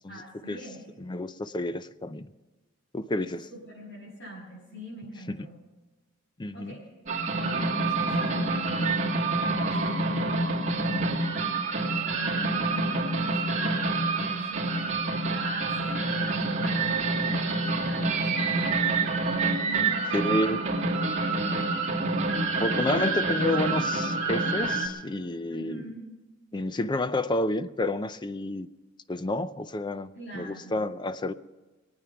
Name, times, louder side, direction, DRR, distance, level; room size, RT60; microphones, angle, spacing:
voice 1, 0.1-0.8 3.5-5.6 6.5-6.9 7.3-8.8 9.8-18.9 19.6-20.6 25.5-26.1 30.1-30.8, right 1 dB, 65° left, -6 dB, 5.9 m, -43 dB
voice 2, 1.0-2.3 2.9-3.5 5.3-5.4 6.4-6.7 20.1-20.6 22.6-25.8 26.5-28.7 29.1-30.1 30.3-31.3, left 1 dB, 25° left, 13 dB, 0.5 m, -29 dB
sound 1, 7.1-24.9, right 3 dB, 40° right, 2.6 m, -27 dB
22.5 x 8.9 x 5.9 m, 1.2 s
head